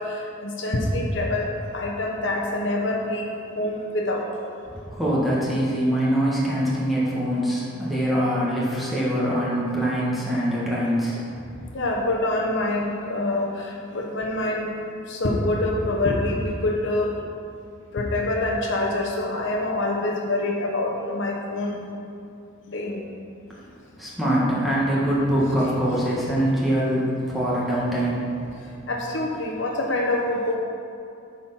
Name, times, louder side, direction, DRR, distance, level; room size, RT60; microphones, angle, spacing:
voice 1, 0.0-4.2 11.7-14.7 15.1-17.1 17.9-21.8 22.7-23.0 28.9-30.6, left 2 dB, 60° left, -1 dB, 0.9 m, -25 dB
voice 2, 4.7-11.6 24.0-28.3, equal, ahead, -7 dB, 1.5 m, -24 dB
8.3 x 4.4 x 5.7 m, 2.6 s
head